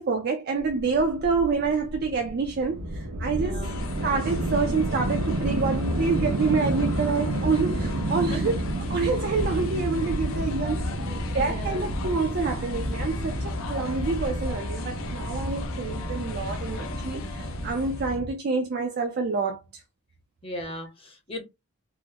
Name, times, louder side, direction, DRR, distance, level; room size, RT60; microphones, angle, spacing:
voice 1, 0.0-3.7 4.0-8.6 8.9-10.8 11.3-19.8, right 4 dB, 45° right, 0.4 m, -27 dB
sound 1, 0.6-18.3, right 1 dB, 85° right, 0.7 m, -30 dB
voice 2, 3.3-3.7 8.3-8.4 11.0-11.9 20.4-21.4, left 1 dB, 25° left, 0.8 m, -37 dB
sound 2, 3.6-18.2, left 4 dB, 65° left, 0.6 m, -40 dB
3.6 x 2.0 x 2.7 m
head